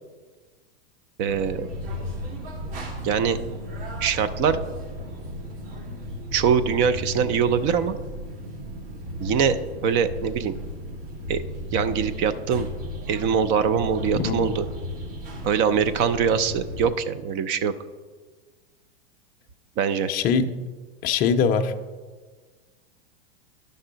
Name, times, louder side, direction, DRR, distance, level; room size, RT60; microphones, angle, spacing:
voice 1, 1.2-1.7 3.0-3.4 4.0-4.6 6.3-8.0 9.2-10.5 11.3-11.4 11.7-12.7 13.1-14.7 15.4-17.7 19.8-20.1, right 7 dB, 40° right, 12 dB, 0.5 m, -23 dB
sound 1, 1.3-16.9, equal, 65° right, 2.2 m, -35 dB
voice 2, 14.1-14.5 20.1-20.5 21.0-21.7, left 6 dB, 30° left, 6 dB, 0.5 m, -22 dB
11.0 x 5.4 x 3.8 m, 1.4 s
hypercardioid pair, 125°, 31 cm